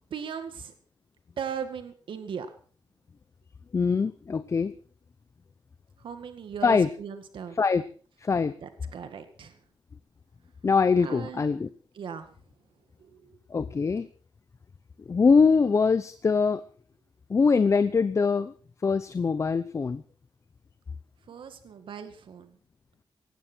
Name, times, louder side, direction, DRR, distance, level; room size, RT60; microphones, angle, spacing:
voice 1, 0.1-0.7 1.4-2.5 6.0-7.6 8.6-9.6 11.0-11.4 11.9-12.3 13.0-13.4 21.3-22.6, right 7 dB, 75° right, 9 dB, 2.0 m, -38 dB
voice 2, 3.7-4.7 6.6-6.9 7.6-7.8 8.2-8.5 10.6-11.7 13.5-14.1 15.1-16.6 17.3-18.5 18.8-20.0, left 5 dB, 35° left, 13 dB, 0.8 m, -23 dB
18.5 x 15.5 x 4.6 m, 0.42 s
wide cardioid pair, 130°, 9 cm